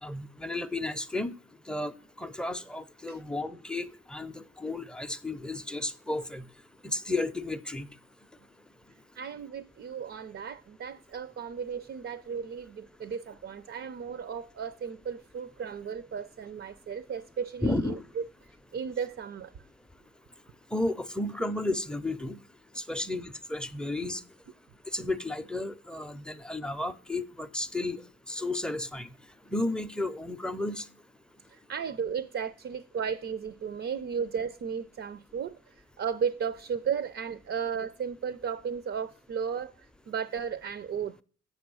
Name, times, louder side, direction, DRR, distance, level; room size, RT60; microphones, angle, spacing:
voice 1, 0.0-1.3 1.7-6.5 6.8-7.9 17.6-18.0 20.7-22.4 22.8-24.2 24.9-28.0 28.3-29.1 29.5-30.9, left 2 dB, 5° left, 0.5 m, -33 dB
voice 2, 9.1-18.2 18.7-19.5 31.5-41.2, right 7 dB, 45° right, 0.5 m, -35 dB
8.0 x 6.3 x 6.1 m
cardioid pair, 90°, 30 cm